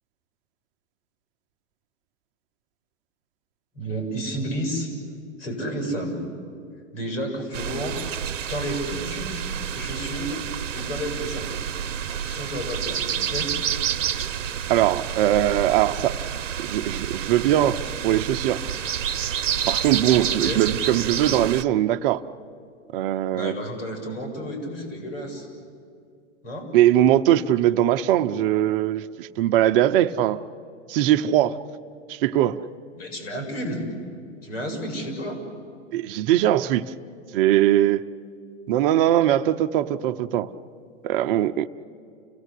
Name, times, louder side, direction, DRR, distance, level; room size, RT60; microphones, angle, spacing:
voice 1, 3.7-4.9 5.4-6.2 6.9-8.1 8.5-10.4 10.7-11.5 12.1-13.5 20.4-20.6 23.3-25.5 26.4-26.7 33.0-33.8 34.4-35.4, equal, 85° left, 7.6 m, -31 dB
sound 1, 7.5-21.6, right 8 dB, 85° right, 0.9 m, -29 dB
voice 2, 14.7-16.2 16.6-18.6 19.7-22.2 22.9-23.6 26.7-30.4 30.9-31.6 32.1-32.7 35.9-36.8 37.3-38.0 38.7-40.5 41.0-41.7, right 12 dB, 50° right, 0.8 m, -21 dB
29.5 x 17.5 x 8.4 m
hypercardioid pair, 125°, 37 cm